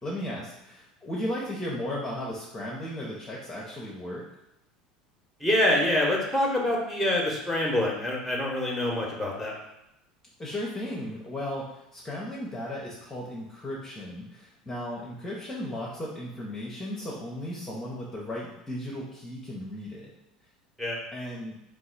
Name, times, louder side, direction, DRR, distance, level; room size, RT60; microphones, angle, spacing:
voice 1, 0.0-4.2 10.4-20.1 21.1-21.6, left 1 dB, 15° left, -5 dB, 0.9 m, -35 dB
voice 2, 5.4-9.6 20.8-21.0, left 1 dB, 5° right, -2 dB, 1.2 m, -26 dB
3.9 x 2.5 x 3.9 m, 0.87 s
figure-of-eight pair, 75°, 4 cm